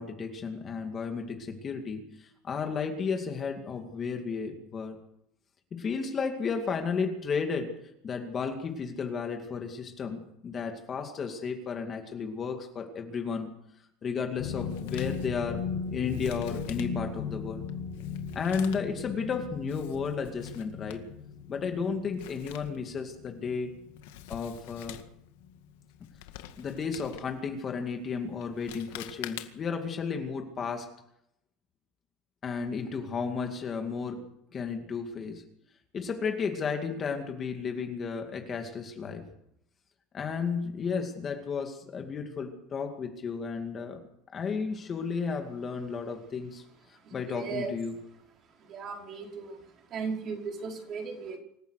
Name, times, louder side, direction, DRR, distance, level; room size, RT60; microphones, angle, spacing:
voice 1, 0.0-5.0 5.7-7.7 8.0-13.5 14.0-15.7 15.9-17.6 18.3-21.0 21.5-23.7 24.3-25.0 26.6-30.9 32.4-34.3 34.5-35.4 35.9-39.2 40.1-44.0 44.3-46.6 46.9-47.9, left 5 dB, 25° left, 4 dB, 2.3 m, -33 dB
sound 1, 14.4-25.1 25.4-25.7 26.1-26.2, left 7 dB, 45° left, 4.3 m, -38 dB
Male speech man speaking, 14.5-29.8, left 13 dB, 85° left, 2.0 m, -48 dB
voice 2, 47.0-47.7 48.6-49.6 49.9-51.4, right 5 dB, 35° right, 1 dB, 5.2 m, -36 dB
26.0 x 15.0 x 6.6 m, 0.77 s
cardioid pair, 165°, 0 cm